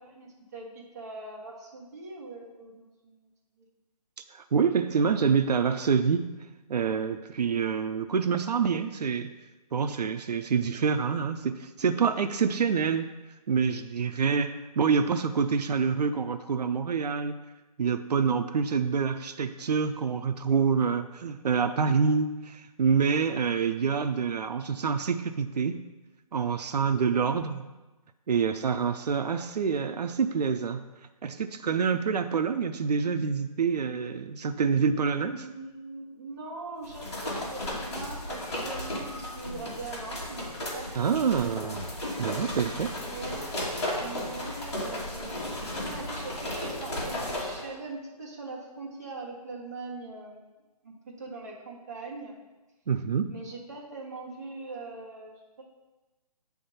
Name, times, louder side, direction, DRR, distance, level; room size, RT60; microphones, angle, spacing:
voice 1, 0.0-3.3 3.6-3.7 18.7-18.8 27.1-27.5 35.3-40.5 40.7-40.9 41.3-41.8 43.0-43.6 44.0-50.5 50.8-52.4 53.3-55.6, right 3 dB, 25° right, -5 dB, 1.4 m, -41 dB
voice 2, 4.3-6.3 6.7-9.3 9.7-13.1 13.5-17.4 17.8-25.8 26.3-27.6 28.3-30.8 31.2-35.4 41.0-41.8 42.2-42.9 52.9-53.3, right 6 dB, 90° right, 8 dB, 0.5 m, -26 dB
sound 1, 36.8-47.6, left 1 dB, 45° left, 2.2 m, -35 dB
8.5 x 3.6 x 5.6 m, 1.1 s
hypercardioid pair, 180°, 20 cm